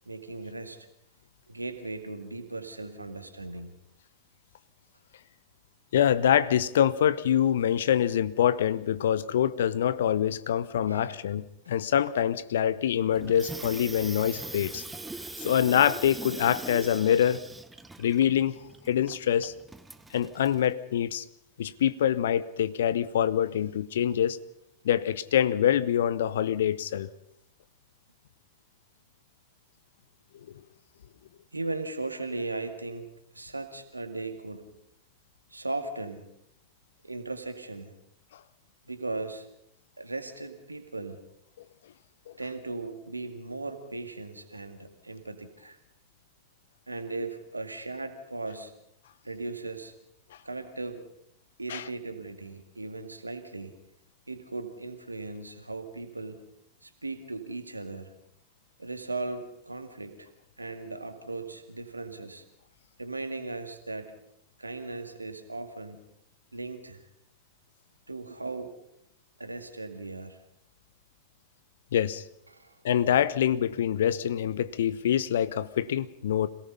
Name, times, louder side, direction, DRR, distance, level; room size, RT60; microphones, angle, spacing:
voice 1, 0.1-0.9 1.5-3.8 10.9-11.2 31.5-33.1 33.3-34.7 35.5-36.3 37.0-37.9 38.9-39.5 40.0-41.2 42.4-45.8 46.9-48.7 49.2-49.9 50.4-51.1 51.6-53.7 54.3-56.5 56.8-58.1 58.8-60.3 60.6-62.4 63.0-64.1 64.6-66.1 66.5-67.0 68.1-68.7 69.4-70.4 72.5-72.8, right 3 dB, 80° right, 7 dB, 2.1 m, -37 dB
voice 2, 5.9-14.8 15.4-17.4 18.0-18.5 18.9-19.5 20.1-21.2 21.6-24.4 24.8-27.1 51.7-51.8 71.9-72.2 72.8-76.5, left 10 dB, 60° left, 16 dB, 0.9 m, -25 dB
Water tap faucet / Sink (filling or washing), 13.1-20.7, right 2 dB, 10° right, 1.0 m, -42 dB
26.5 x 18.0 x 5.6 m, 0.77 s
figure-of-eight pair, 90°, 0 cm